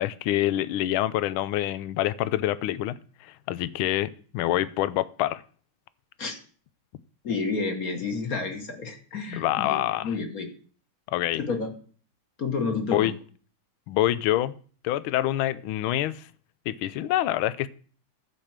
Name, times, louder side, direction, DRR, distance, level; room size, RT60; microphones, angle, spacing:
voice 1, 0.0-5.4 9.4-10.1 11.1-11.4 12.9-13.1 13.9-14.5 14.8-16.3 16.7-17.7, left 14 dB, 75° left, 1.4 m, -26 dB
voice 2, 7.2-10.5 11.3-11.7 12.4-13.1, left 4 dB, 45° left, 1.7 m, -30 dB
12.0 x 5.1 x 7.3 m
omnidirectional pair, 2.4 m